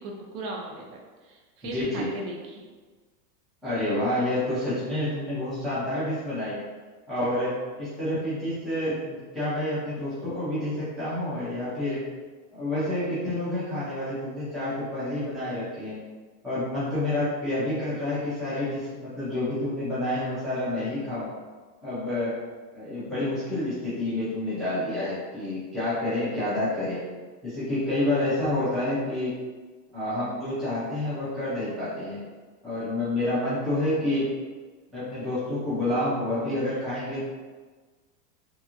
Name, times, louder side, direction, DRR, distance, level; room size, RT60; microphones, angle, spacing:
voice 1, 0.0-2.6, right 2 dB, 45° right, 0 dB, 0.6 m, -38 dB
voice 2, 1.7-2.1 3.6-6.6 7.1-12.1 12.5-16.0 16.4-21.3 21.8-22.3 22.7-27.0 27.4-29.4 29.9-32.2 32.6-34.3 34.9-37.2, left 1 dB, ahead, -13 dB, 0.3 m, -28 dB
2.9 x 2.5 x 2.4 m, 1.4 s
supercardioid pair, 145°, 48 cm